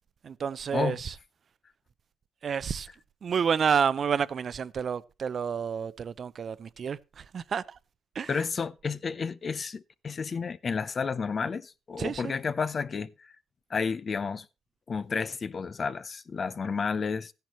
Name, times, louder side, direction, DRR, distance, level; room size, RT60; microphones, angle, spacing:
voice 1, 0.2-1.1 2.4-2.9 3.2-7.6 8.2-8.4 12.0-12.3, right 7 dB, 50° right, 0.6 m, -29 dB
voice 2, 8.3-13.3 13.7-14.5 14.9-17.3, left 5 dB, 40° left, 0.6 m, -31 dB
14.0 x 10.5 x 3.1 m
cardioid pair, 90°, 0 cm